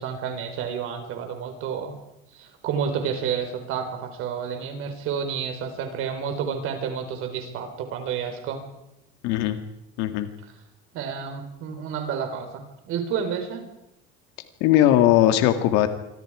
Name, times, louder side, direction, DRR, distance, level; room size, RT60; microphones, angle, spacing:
voice 1, 0.0-1.9 2.4-8.6 10.9-13.6, right 7 dB, 45° right, 6 dB, 4.4 m, -30 dB
voice 2, 9.2-9.6 10.0-10.3 14.6-15.9, left 12 dB, 65° left, 8 dB, 2.1 m, -19 dB
26.5 x 25.5 x 5.0 m, 0.87 s
cardioid pair, 170°, 29 cm